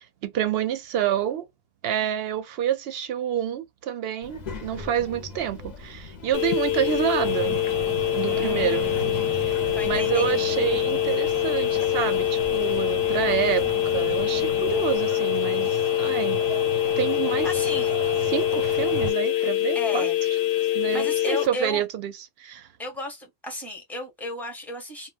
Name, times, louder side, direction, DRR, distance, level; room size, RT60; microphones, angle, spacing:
voice 1, 0.0-1.5 1.8-7.6 8.1-9.0 9.4-16.4 17.0-17.5 18.3-20.1 20.7-22.7, right 10 dB, 60° right, 0.7 m, -28 dB
Child speech kid speaking, 4.2-15.0, left 5 dB, 45° left, 0.6 m, -39 dB
sound 1, 6.3-21.5, left 16 dB, 70° left, 0.8 m, -25 dB
sound 2, 7.2-19.1, right 7 dB, 90° right, 1.0 m, -35 dB
voice 2, 8.3-9.4 9.7-10.6 17.4-18.0 19.7-20.2 20.9-21.8 22.8-25.1, left 1 dB, ahead, 0.8 m, -34 dB
2.2 x 2.2 x 3.2 m
omnidirectional pair, 1.3 m